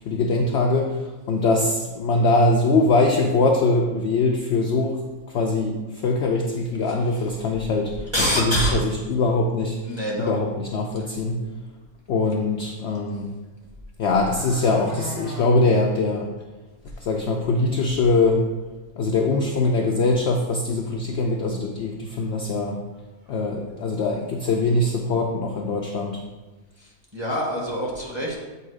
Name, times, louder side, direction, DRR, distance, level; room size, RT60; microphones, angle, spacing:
voice 1, 0.0-5.0 5.3-8.1 8.4-9.8 10.2-11.4 12.1-13.3 14.0-16.3 17.0-18.4 19.0-22.8 23.3-26.2, left 3 dB, 65° left, 1 dB, 0.7 m, -22 dB
sound 1, 5.1-5.2 5.7-5.8 6.1-6.2 7.2-7.3 7.8-8.1 8.4-8.5 8.8-9.3 10.7-10.8 11.0-11.1 13.4-13.5 13.9-15.5 15.9-16.0 16.4-16.5 16.9-17.0 17.3-17.4 20.2-20.3 20.6-20.8 21.5-21.6 22.1-22.3 22.5-23.3 23.7-23.8, left 1 dB, 55° right, 2.6 m, -40 dB
voice 2, 6.9-7.3 8.1-8.8 9.8-10.3 12.9-13.0 26.8-28.4, equal, 20° right, -4 dB, 1.1 m, -26 dB
7.9 x 2.8 x 4.7 m, 1.2 s
omnidirectional pair, 1.5 m